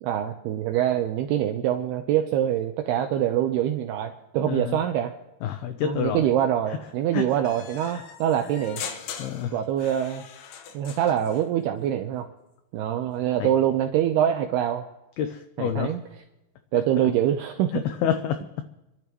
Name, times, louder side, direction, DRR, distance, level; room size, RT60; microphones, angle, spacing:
voice 1, 0.0-5.1 5.8-8.8 9.5-10.2 10.7-12.3 12.7-14.8 15.6-16.0 16.7-17.8, right 11 dB, 90° right, 6 dB, 2.3 m, -24 dB
voice 2, 4.4-4.8 5.4-6.2 7.1-7.2 9.2-9.5 13.4-13.5 15.2-16.0 17.0-17.1 17.7-18.4, left 9 dB, 90° left, 8 dB, 2.2 m, -28 dB
sound 1, 7.4-11.5, left 7 dB, 75° left, 3.5 m, -40 dB
29.0 x 12.0 x 3.1 m, 0.95 s
omnidirectional pair, 5.5 m